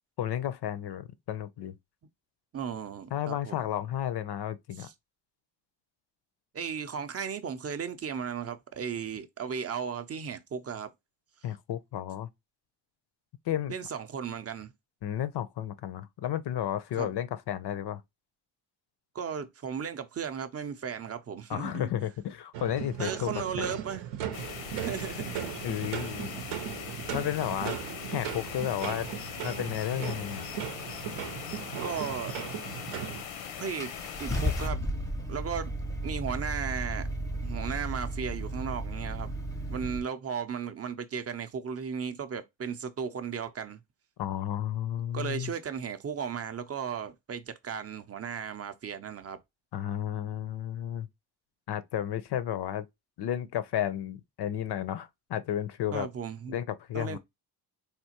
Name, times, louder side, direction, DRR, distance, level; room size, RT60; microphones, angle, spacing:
voice 1, 0.2-1.7 3.1-4.9 11.4-12.3 13.5-13.8 15.0-18.0 21.5-23.7 25.6-26.3 27.1-27.7 28.1-29.1 29.4-30.5 44.2-45.5 49.7-51.1 51.7-52.9 53.2-56.1 56.5-57.2, left 11 dB, 55° left, 0.6 m, -32 dB
voice 2, 2.5-3.7 4.8-4.9 6.5-10.9 13.7-14.7 17.0-17.1 19.1-21.9 23.0-24.1 24.8-25.4 31.8-32.3 33.6-33.9 34.2-34.9 35.3-35.7 36.0-37.1 37.4-39.3 39.7-43.8 45.1-49.4 55.9-56.6 56.9-57.2, right 7 dB, 30° right, 0.5 m, -35 dB
sound 1, 22.5-33.2, right 10 dB, 80° right, 0.7 m, -37 dB
sound 2, 24.3-34.7, left 8 dB, 80° left, 0.8 m, -41 dB
Car / Engine starting, 33.1-33.2 33.8-40.0, equal, 5° left, 0.6 m, -34 dB
3.6 x 2.4 x 2.8 m
cardioid pair, 65°, 48 cm